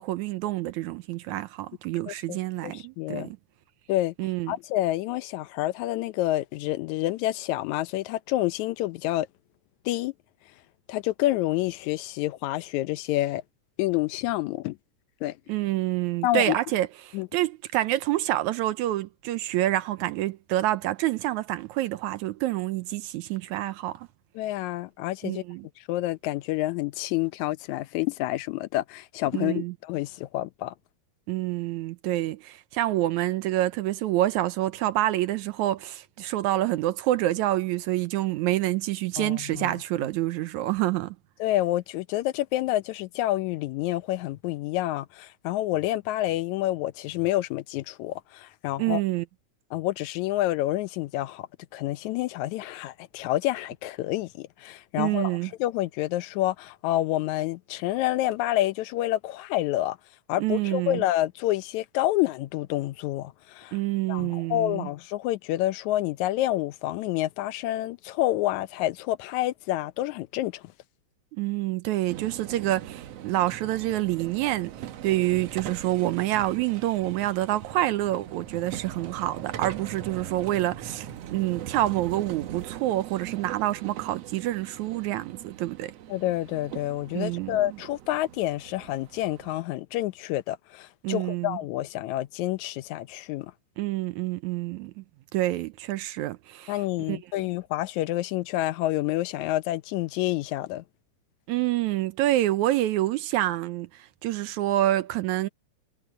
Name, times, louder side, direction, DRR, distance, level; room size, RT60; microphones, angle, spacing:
voice 1, 0.0-3.4 4.2-4.5 15.5-24.1 25.2-25.7 29.3-29.7 31.3-41.2 48.8-49.3 55.0-55.5 60.4-61.0 63.7-64.9 71.3-85.9 87.2-87.8 91.0-91.6 93.8-95.0 95.3-97.2 101.5-105.5, right 15 dB, 80° right, 2.0 m, -27 dB
voice 2, 2.1-2.4 2.6-3.3 3.9-4.1 4.5-9.3 9.9-10.1 10.9-13.4 13.8-14.8 15.2-15.4 16.2-16.6 17.1-17.3 24.4-25.4 25.9-30.7 39.2-39.7 41.4-49.0 49.7-51.5 51.7-60.0 60.3-63.8 64.1-70.6 86.1-93.5 96.7-100.8, left 15 dB, 80° left, 2.0 m, -28 dB
sound 1, 72.1-89.6, right 11 dB, 65° right, 1.9 m, -41 dB
omnidirectional pair, 3.4 m